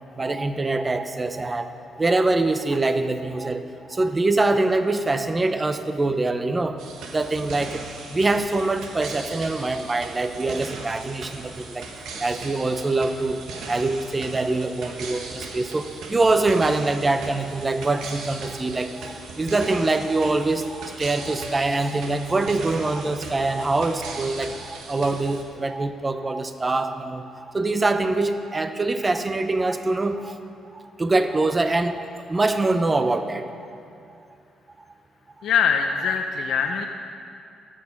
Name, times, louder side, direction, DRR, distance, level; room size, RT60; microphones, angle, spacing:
voice 1, 0.2-1.7 2.0-3.6 3.9-6.8 7.1-7.8 8.1-11.9 12.2-13.4 13.7-30.3 30.7-32.0 32.3-33.4 36.0-36.1 36.6-36.8, right 2 dB, 25° right, 9 dB, 0.8 m, -24 dB
sound 1, 6.8-25.4, right 3 dB, 80° right, 1.5 m, -38 dB
voice 2, 35.4-36.9, left 7 dB, 70° left, 4 dB, 0.7 m, -22 dB
13.5 x 9.3 x 5.9 m, 2.5 s
cardioid pair, 90°, 0 cm